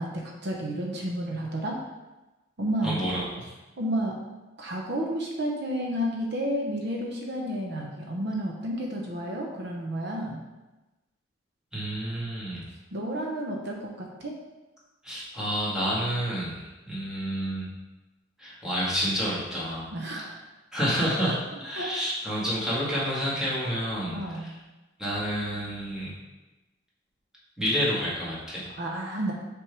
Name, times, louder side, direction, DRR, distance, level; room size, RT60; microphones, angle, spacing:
voice 1, 0.0-1.8 2.6-3.0 3.8-4.2 4.6-10.4 12.9-14.3 19.9-20.4 21.7-21.9 24.1-24.5 28.7-29.3, right 1 dB, 60° right, -1 dB, 0.8 m, -31 dB
voice 2, 2.8-3.5 11.7-12.6 15.0-17.7 18.4-19.9 20.7-24.5 25.0-26.1 27.6-28.7, equal, 5° right, -8 dB, 1.8 m, -29 dB
6.0 x 3.5 x 4.6 m, 1.1 s
head